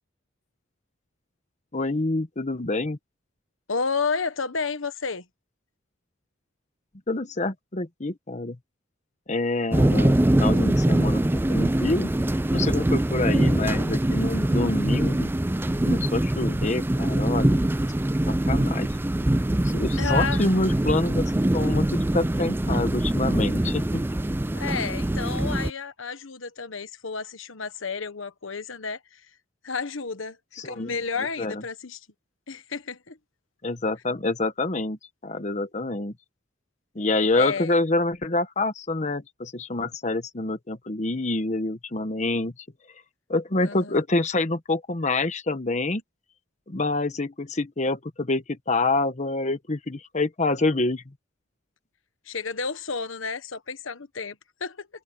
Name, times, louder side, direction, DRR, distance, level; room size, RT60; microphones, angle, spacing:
voice 1, 1.7-3.0 7.1-8.6 9.3-11.2 11.5-12.1 12.5-15.3 15.8-17.6 18.3-18.9 19.6-24.0 30.6-31.0 31.4-31.6 33.6-36.1 36.9-42.5 43.3-46.0 46.7-51.0, left 2 dB, 35° left, 1.0 m, -27 dB
voice 2, 3.7-5.2 20.0-20.4 24.5-29.3 29.6-30.4 30.6-32.0 32.5-33.2 37.3-37.8 43.6-44.0 52.2-54.9, left 5 dB, 80° left, 1.3 m, -31 dB
sound 1, 9.7-25.7, right 1 dB, 10° right, 0.4 m, -23 dB
head